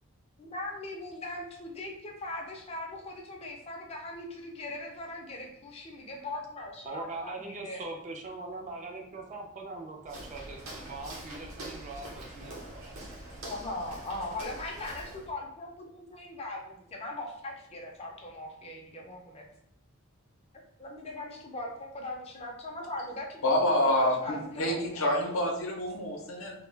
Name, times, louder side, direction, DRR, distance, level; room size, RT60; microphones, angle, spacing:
voice 1, 0.4-7.8 13.4-19.4 20.8-25.1, left 2 dB, 30° left, 0 dB, 0.4 m, -39 dB
voice 2, 6.9-12.9, right 2 dB, 35° right, 2 dB, 0.3 m, -41 dB
Walk footsteps, 10.0-15.3, right 1 dB, 75° right, 0.8 m, -44 dB
voice 3, 23.4-26.5, left 1 dB, 70° left, 0 dB, 0.6 m, -27 dB
2.2 x 2.1 x 3.2 m, 0.75 s
head